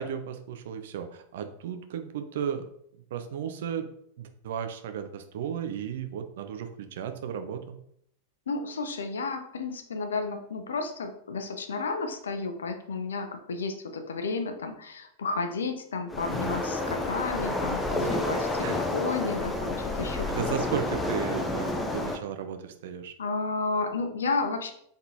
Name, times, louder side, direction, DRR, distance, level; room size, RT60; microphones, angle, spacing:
voice 1, 0.0-2.6 3.1-3.9 4.2-7.8 18.6-18.8 20.0-23.1, right 8 dB, 55° right, 8 dB, 0.4 m, -34 dB
voice 2, 8.5-20.7 23.2-24.7, left 4 dB, 65° left, 6 dB, 0.5 m, -32 dB
Waves surf, 16.1-22.2, left 2 dB, 10° left, 0.5 m, -30 dB
3.7 x 3.6 x 2.8 m, 0.70 s
figure-of-eight pair, 90°, 0 cm